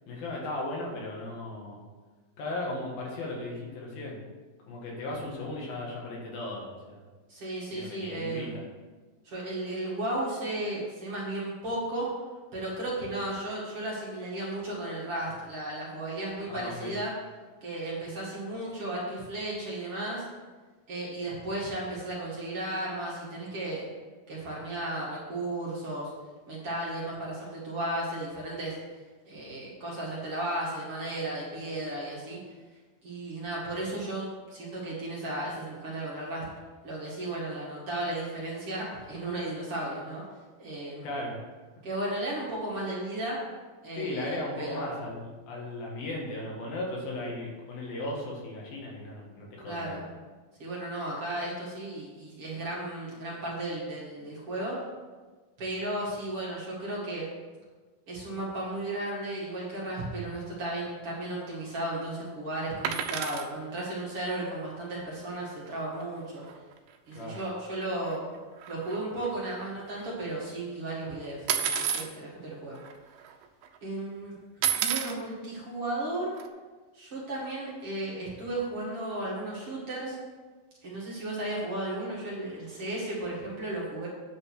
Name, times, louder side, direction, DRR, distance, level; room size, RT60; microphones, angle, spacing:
voice 1, 0.1-1.8 2.4-4.2 4.7-7.0 7.7-8.6 16.5-16.9 41.0-41.4 44.0-50.1 67.2-67.4, left 2 dB, 75° left, -2 dB, 3.6 m, -36 dB
voice 2, 7.3-8.6 9.2-12.1 12.5-17.1 17.6-20.3 20.9-23.8 24.3-26.1 26.5-28.7 29.3-32.4 33.0-36.4 36.8-40.2 40.6-41.1 41.8-43.4 43.8-45.0 49.7-50.0 50.6-54.8 55.6-57.2 58.1-66.4 67.1-68.2 68.7-72.8 73.8-74.3 74.8-76.3 76.9-80.2 80.8-84.1, right 1 dB, 45° right, -6 dB, 2.7 m, -34 dB
sound 1, 62.8-63.5 65.7-65.8 66.0-66.2 66.4-66.6 67.4-67.5 67.9-68.4 68.6-70.1 71.5-72.1 72.9-73.0 73.2-73.7 74.6-75.2 76.4-76.5, right 9 dB, 85° right, 2.6 m, -30 dB
9.7 x 5.4 x 6.5 m, 1.3 s
omnidirectional pair, 4.2 m